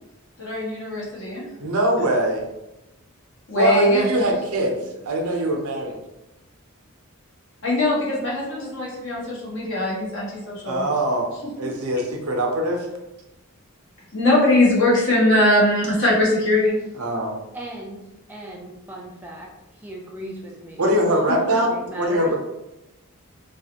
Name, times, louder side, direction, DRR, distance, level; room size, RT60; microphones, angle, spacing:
voice 1, 0.4-1.4 3.5-4.1 7.6-10.9 11.6-11.7 14.1-16.8, left 1 dB, 60° left, -5 dB, 1.2 m, -21 dB
voice 2, 1.6-2.5 3.6-4.8 5.0-5.9 10.7-11.3 11.6-12.9 17.0-17.4 20.8-21.7 22.0-22.3, right 1 dB, 90° right, 1 dB, 0.7 m, -22 dB
voice 3, 17.5-22.3, right 1 dB, 10° right, -2 dB, 0.4 m, -37 dB
3.2 x 2.4 x 2.8 m, 0.94 s
head